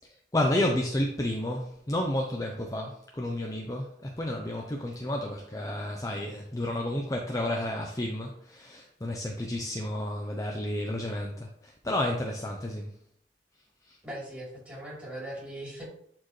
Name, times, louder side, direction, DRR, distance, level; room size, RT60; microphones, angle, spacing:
voice 1, 0.3-12.9 13.9-14.0, left 1 dB, 20° left, 0.6 m, -31 dB
voice 2, 14.0-15.9, right 1 dB, 10° right, 3.4 m, -40 dB
11.0 x 4.5 x 3.2 m
head